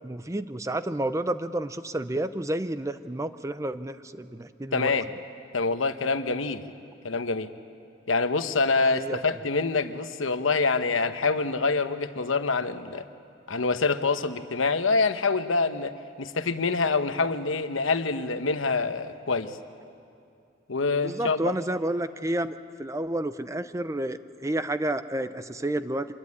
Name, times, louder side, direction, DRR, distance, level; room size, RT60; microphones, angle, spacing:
voice 1, 0.0-4.9 8.8-9.2 21.0-26.1, right 1 dB, 15° right, 12 dB, 0.5 m, -30 dB
voice 2, 4.7-5.1 5.5-6.6 7.0-7.5 8.1-13.1 13.5-19.6 20.7-21.5, left 4 dB, 80° left, 9 dB, 1.1 m, -26 dB
26.0 x 21.0 x 9.7 m, 2.5 s
head